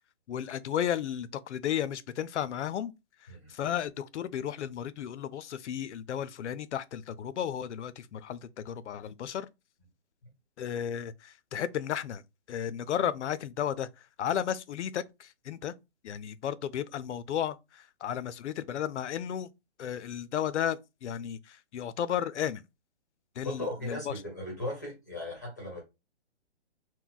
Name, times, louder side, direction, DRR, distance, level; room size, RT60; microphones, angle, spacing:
voice 1, 0.3-2.9 3.5-9.5 10.6-12.2 12.5-13.9 14.2-15.7 16.0-19.5 19.8-22.6 23.4-24.1, left 9 dB, 90° left, 0.5 m, -33 dB
voice 2, 23.4-25.8, left 1 dB, 15° left, 0.6 m, -37 dB
3.9 x 2.1 x 2.3 m
hypercardioid pair, 180°, 34 cm